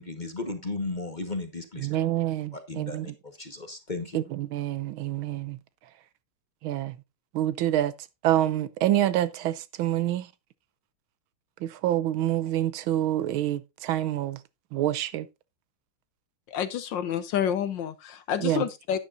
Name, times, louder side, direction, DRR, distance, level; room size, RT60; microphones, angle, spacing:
voice 1, 0.0-2.0 2.5-4.2, left 3 dB, 30° left, 1.0 m, -35 dB
voice 2, 1.8-3.0 4.5-5.6 6.6-6.9 7.3-7.9 8.2-10.2 11.6-14.4 14.7-15.2 18.4-18.6, right 12 dB, 75° right, 1.4 m, -26 dB
voice 3, 16.5-19.0, left 9 dB, 65° left, 1.3 m, -29 dB
11.5 x 9.7 x 2.5 m
omnidirectional pair, 2.4 m